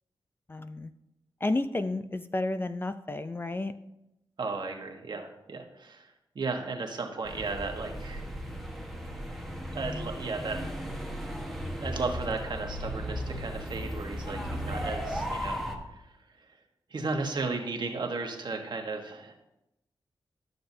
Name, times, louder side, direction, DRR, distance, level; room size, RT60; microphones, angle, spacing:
voice 1, 0.5-0.9 1.4-3.8, left 2 dB, 25° left, 11 dB, 0.5 m, -31 dB
voice 2, 4.4-6.0 6.3-8.2 9.7-10.6 11.8-15.6 16.9-19.3, right 3 dB, 55° right, 3 dB, 1.4 m, -34 dB
sound 1, 7.3-15.8, equal, ahead, 1.4 m, -36 dB
12.0 x 6.7 x 2.8 m, 0.90 s
cardioid pair, 55°, 9 cm